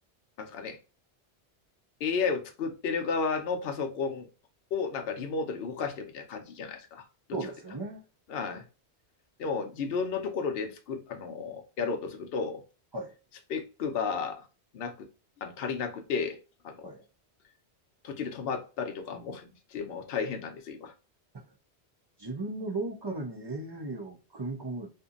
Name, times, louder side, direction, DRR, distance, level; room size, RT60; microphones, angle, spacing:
voice 1, 0.4-0.8 2.0-4.3 4.7-7.0 8.3-8.7 9.4-12.6 13.5-14.4 14.7-15.1 15.4-16.4 16.6-16.9 18.0-20.9, left 5 dB, 65° left, 0.8 m, -33 dB
voice 2, 7.3-8.0 12.9-13.1 16.8-17.0 21.3-21.5 22.2-24.9, right 2 dB, 35° right, 0.4 m, -36 dB
2.7 x 2.5 x 2.3 m
omnidirectional pair, 1.1 m